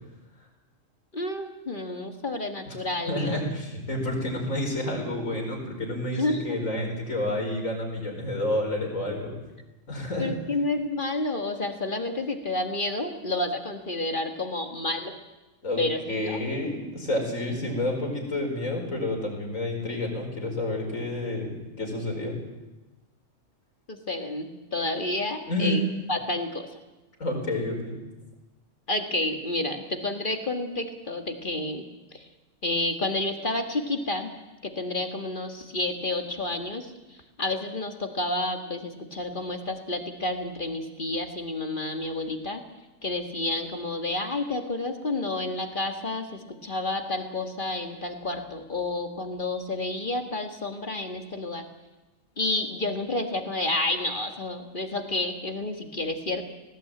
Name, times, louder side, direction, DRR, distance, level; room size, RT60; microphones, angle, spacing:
voice 1, 1.1-3.5 6.2-6.6 10.2-15.2 15.8-16.4 23.9-25.8 26.1-26.7 28.9-31.8 32.1-32.3 32.6-34.3 34.6-42.6 43.0-51.6 52.4-56.5, left 2 dB, 40° left, 6 dB, 1.8 m, -30 dB
voice 2, 3.1-9.3 9.9-10.3 15.6-22.4 25.5-25.8 27.2-28.0, left 1 dB, 90° left, 1 dB, 5.2 m, -29 dB
18.5 x 17.5 x 8.9 m, 1.1 s
omnidirectional pair, 1.4 m